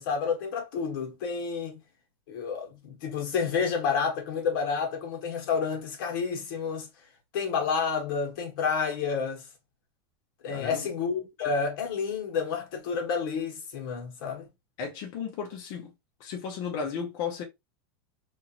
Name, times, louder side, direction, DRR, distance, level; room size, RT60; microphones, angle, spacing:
voice 1, 0.0-1.8 2.3-6.9 7.3-9.5 10.4-14.5, left 5 dB, 60° left, 1.3 m, -30 dB
voice 2, 10.5-10.9 14.8-15.9 16.2-17.4, left 6 dB, 45° left, 0.8 m, -34 dB
2.8 x 2.5 x 2.8 m
supercardioid pair, 165°, 13 cm